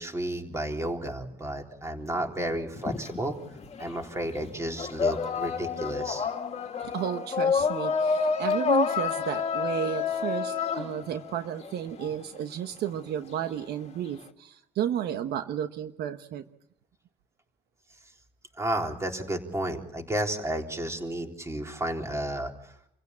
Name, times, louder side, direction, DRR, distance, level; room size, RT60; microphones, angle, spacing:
voice 1, 0.0-3.4 3.8-6.3 18.6-22.7, right 1 dB, 15° right, 2 dB, 3.8 m, -32 dB
sound 1, 2.7-4.0 4.3-12.1, left 5 dB, 40° left, 2.0 m, -28 dB
voice 2, 6.8-16.4, right 10 dB, 70° right, 9 dB, 1.2 m, -32 dB
28.0 x 16.0 x 8.6 m, 0.77 s
cardioid pair, 110°, 17 cm